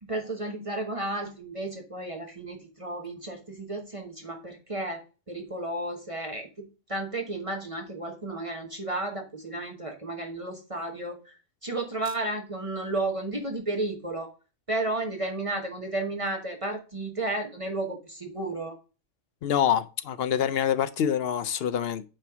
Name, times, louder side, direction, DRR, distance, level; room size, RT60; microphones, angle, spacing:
voice 1, 0.0-11.3 11.6-14.3 14.7-18.8, right 2 dB, 30° right, 1.1 m, -33 dB
voice 2, 19.4-22.0, left 9 dB, 65° left, 0.7 m, -26 dB
8.8 x 3.3 x 5.8 m
omnidirectional pair, 1.2 m